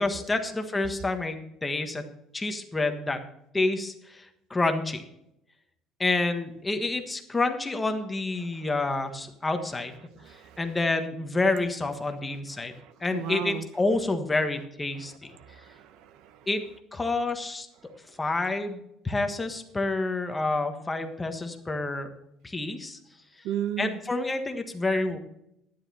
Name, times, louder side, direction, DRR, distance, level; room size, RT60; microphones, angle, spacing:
voice 1, 0.0-2.1 2.3-3.2 3.5-5.0 6.0-10.0 10.6-12.7 13.0-15.4 16.5-16.6 16.9-17.7 18.2-22.1 22.4-23.0 23.8-25.2, left 2 dB, 15° left, 6 dB, 1.4 m, -28 dB
voice 2, 10.1-10.6 12.7-13.7 15.0-16.5 23.4-24.0, right 10 dB, 70° right, 12 dB, 0.9 m, -36 dB
12.0 x 10.5 x 4.2 m, 0.81 s
cardioid pair, 140°, 0 cm